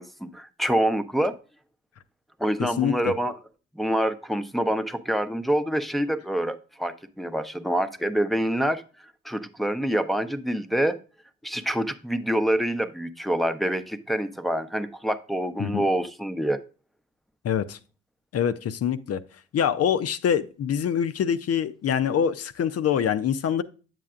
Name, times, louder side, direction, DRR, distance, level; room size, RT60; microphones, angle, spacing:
voice 1, 0.0-1.4 2.4-3.3 3.8-8.8 9.2-11.0 11.4-16.6, right 1 dB, ahead, 0.7 m, -26 dB
voice 2, 2.6-3.1 15.6-15.8 17.4-17.8 18.3-19.2 19.5-23.6, left 8 dB, 50° left, 0.6 m, -25 dB
9.1 x 7.4 x 2.4 m
hypercardioid pair, 40°, 32 cm